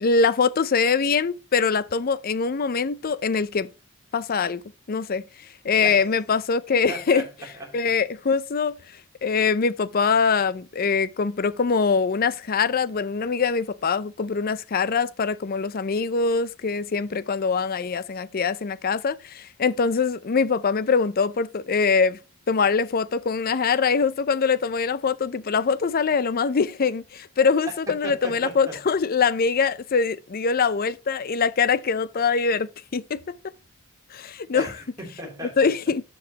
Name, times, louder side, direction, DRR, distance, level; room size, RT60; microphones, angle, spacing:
voice 1, 0.0-3.7 4.1-4.6 4.9-5.2 5.6-7.3 7.7-8.7 9.2-22.2 22.5-33.2 34.1-34.7 35.6-36.0, left 5 dB, 45° left, 0.5 m, -23 dB
voice 2, 6.9-8.0 28.0-28.8 34.5-35.7, right 1 dB, 15° right, 3.0 m, -37 dB
12.5 x 5.3 x 2.9 m
head